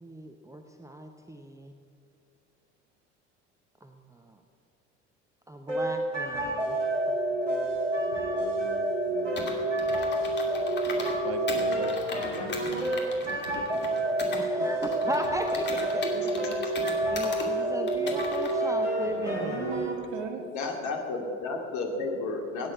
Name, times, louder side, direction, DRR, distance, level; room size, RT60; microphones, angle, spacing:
voice 1, 0.0-1.7 3.8-4.4 5.5-7.7 12.7-12.9 14.4-16.4 17.1-19.8, right 1 dB, 10° right, 5 dB, 0.9 m, -38 dB
sound 1, 5.7-19.9, right 1 dB, 85° right, 3.5 m, -29 dB
voice 2, 8.0-10.1 11.2-12.9 13.2-13.9 14.5-14.7 19.0-20.5, right 5 dB, 55° right, 6 dB, 1.5 m, -40 dB
Computer keyboard, 9.4-11.2 11.5-14.4 14.8-17.5 17.9-18.5, left 3 dB, 30° left, 2.6 m, -38 dB
voice 3, 16.0-16.5 20.4-22.7, left 3 dB, 50° left, 1 dB, 2.6 m, -33 dB
17.0 x 10.0 x 6.2 m, 2.4 s
figure-of-eight pair, 60°, 36 cm